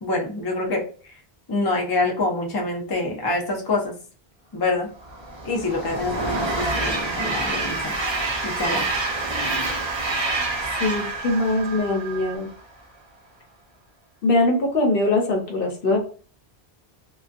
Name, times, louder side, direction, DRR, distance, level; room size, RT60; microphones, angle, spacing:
voice 1, 0.0-0.8 1.5-3.9 4.5-4.9 5.4-7.9 8.4-8.9, left 2 dB, 35° left, 0 dB, 0.4 m, -26 dB
Train, 5.0-12.5, right 2 dB, 35° right, 0.5 m, -27 dB
sound 1, 6.9-12.4, right 8 dB, 85° right, 0.8 m, -38 dB
voice 2, 10.8-12.5 14.2-16.0, left 2 dB, 65° left, 2 dB, 0.9 m, -22 dB
2.4 x 2.2 x 2.4 m, 0.41 s
omnidirectional pair, 1.0 m